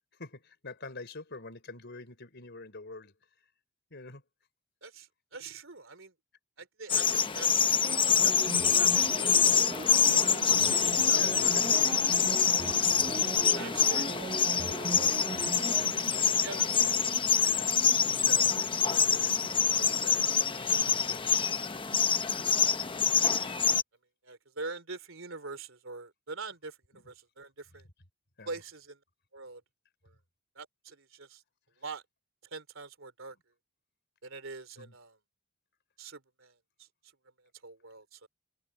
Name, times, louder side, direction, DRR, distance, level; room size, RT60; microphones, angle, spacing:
voice 1, 0.2-3.2 3.9-4.2 11.1-11.8 12.9-14.3 15.7-21.4 26.9-27.0 28.4-28.5 34.8-34.9, left 3 dB, 55° left, 4.1 m, -47 dB
voice 2, 4.8-6.1 6.6-7.7 8.2-10.0 10.3-10.5 10.9-11.7 13.6-14.0 16.4-16.8 23.2-23.5 24.2-27.9 28.5-29.0 29.3-29.6 30.0-30.1 30.6-31.4 31.8-32.0 32.5-33.4 34.2-35.2 36.0-36.9 37.6-38.3, right 3 dB, 70° right, 3.8 m, -44 dB
sound 1, 6.9-23.8, left 7 dB, 25° left, 0.8 m, -26 dB
sound 2, 7.8-17.2 17.6-17.7, right 2 dB, 30° right, 0.8 m, -39 dB
head